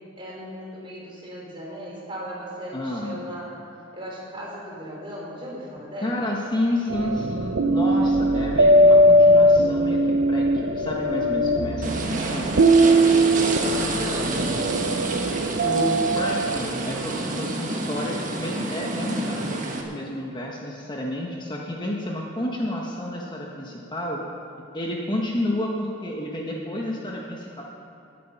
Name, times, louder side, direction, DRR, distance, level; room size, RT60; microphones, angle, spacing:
voice 1, 0.2-3.6 3.9-6.2 13.2-15.1, equal, 25° right, -4 dB, 3.8 m, -37 dB
voice 2, 2.7-3.2 6.0-12.5 15.6-24.3 24.7-27.6, left 1 dB, 25° left, -2 dB, 1.1 m, -30 dB
sound 1, 6.9-17.3, right 1 dB, 60° right, 0.6 m, -20 dB
sound 2, 11.8-19.8, right 2 dB, 40° right, 1.4 m, -29 dB
18.5 x 8.6 x 5.7 m, 2.6 s
head